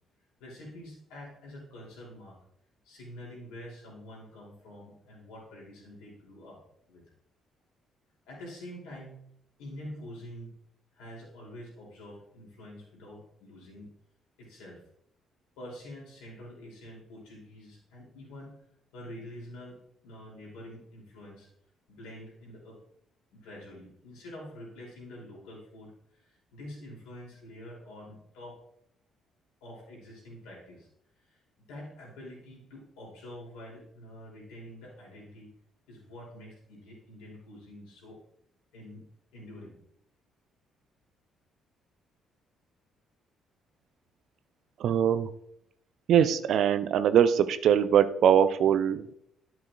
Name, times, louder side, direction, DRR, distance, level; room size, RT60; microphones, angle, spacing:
voice 1, 0.4-2.4 2.8-6.6 6.9-7.0 8.2-9.2 9.6-10.5 10.9-13.9 14.4-14.8 15.6-18.6 18.9-19.8 20.0-21.5 21.9-22.8 23.3-28.6 29.6-30.9 31.2-31.4 31.7-35.5 35.9-38.2 38.7-39.1 39.3-39.8, left 1 dB, 70° left, -4 dB, 3.2 m, -46 dB
voice 2, 44.8-45.3 46.1-49.1, right 9 dB, 60° right, 12 dB, 0.4 m, -22 dB
11.5 x 6.1 x 2.5 m, 0.74 s
figure-of-eight pair, 45°, 0 cm